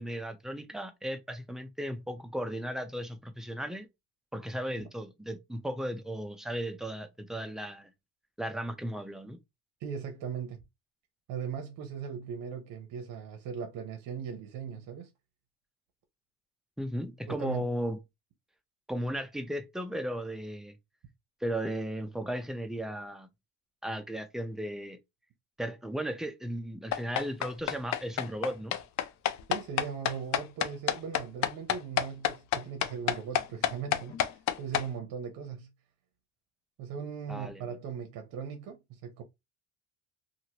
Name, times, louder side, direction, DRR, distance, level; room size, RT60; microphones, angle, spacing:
voice 1, 0.0-3.9 4.3-7.9 8.4-9.4 16.8-18.0 18.9-20.8 21.4-23.3 23.8-25.0 25.6-28.8 37.3-37.8, equal, ahead, 0.4 m, -36 dB
voice 2, 9.8-10.6 11.3-15.1 17.3-17.6 29.5-35.7 36.8-39.2, right 7 dB, 70° right, 0.7 m, -39 dB
sound 1, 26.9-34.9, left 11 dB, 50° left, 0.5 m, -28 dB
2.9 x 2.5 x 2.8 m
cardioid pair, 105°, 35 cm